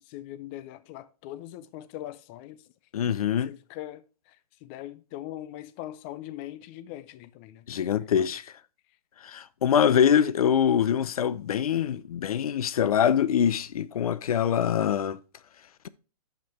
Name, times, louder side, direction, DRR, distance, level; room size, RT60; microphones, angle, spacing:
voice 1, 0.0-2.6 3.4-4.4 4.6-7.7 8.0-8.3, left 13 dB, 20° left, 0.3 m, -41 dB
voice 2, 2.9-3.5 7.7-8.5 9.2-15.2, left 8 dB, 65° left, 0.6 m, -24 dB
7.4 x 5.8 x 4.2 m
hypercardioid pair, 145°, 20 cm